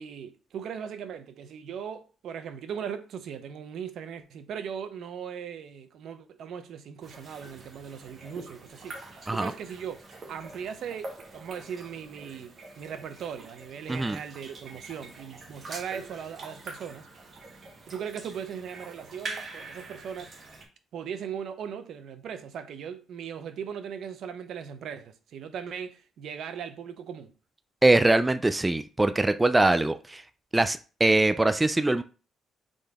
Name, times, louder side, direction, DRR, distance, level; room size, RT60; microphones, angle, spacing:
voice 1, 0.0-10.0 10.3-17.1 17.9-20.3 20.9-27.3, right 7 dB, 70° right, 0.6 m, -38 dB
sound 1, 7.0-20.6, right 3 dB, 45° right, 1.4 m, -45 dB
voice 2, 27.8-30.2 30.5-32.0, right 2 dB, 15° right, 0.3 m, -22 dB
3.8 x 3.8 x 3.5 m
cardioid pair, 90°, 0 cm